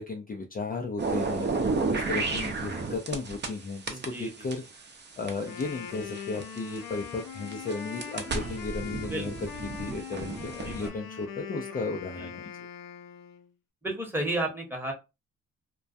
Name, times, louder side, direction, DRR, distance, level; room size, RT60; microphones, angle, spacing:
voice 1, 0.0-1.5 1.9-4.6 5.2-9.5 9.8-12.7, left 3 dB, 30° left, 2 dB, 0.4 m, -35 dB
sound 1, 1.0-3.5 3.9-6.8 7.4-10.9, right 4 dB, 35° right, 0.6 m, -32 dB
voice 2, 3.9-4.5 8.2-8.7 9.0-9.3 10.6-10.9 12.2-12.3 13.8-14.9, right 1 dB, 5° right, 0 dB, 1.0 m, -33 dB
Wind instrument woodwind instrument, 5.3-13.5, left 7 dB, 80° left, 0.6 m, -42 dB
2.2 x 2.2 x 2.5 m, 0.26 s
cardioid pair, 80°, 32 cm